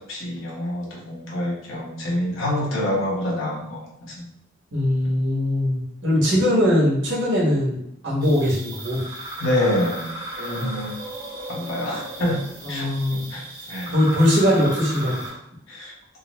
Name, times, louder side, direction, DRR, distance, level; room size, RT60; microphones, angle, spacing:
voice 1, 0.0-4.3 5.0-5.1 9.4-10.1 10.4-11.0 11.5-12.4 12.7-13.9 15.7-15.9, left 1 dB, 75° left, -4 dB, 1.0 m, -27 dB
voice 2, 4.7-9.0 10.6-10.9 12.6-13.3 13.9-15.4, left 1 dB, 65° right, -5 dB, 1.3 m, -21 dB
sound 1, 8.2-15.3, right 1 dB, 20° right, 0.9 m, -35 dB
3.7 x 2.0 x 3.0 m, 0.78 s
head